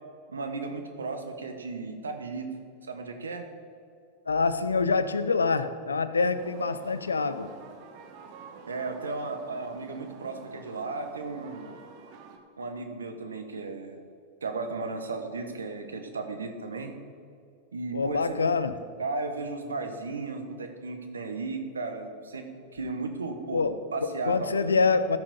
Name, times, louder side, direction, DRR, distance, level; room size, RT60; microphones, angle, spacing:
voice 1, 0.3-2.5 2.9-3.5 8.7-11.8 12.6-14.0 14.4-16.9 17.7-18.4 19.0-24.9, right 3 dB, 80° right, 6 dB, 1.2 m, -35 dB
voice 2, 4.3-7.5 17.9-18.8 23.5-23.8 24.3-25.2, left 4 dB, 85° left, 13 dB, 0.5 m, -25 dB
sound 1, 6.4-12.4, right 6 dB, 50° right, 1.2 m, -49 dB
14.0 x 6.0 x 5.3 m, 2.4 s
figure-of-eight pair, 95°, 0 cm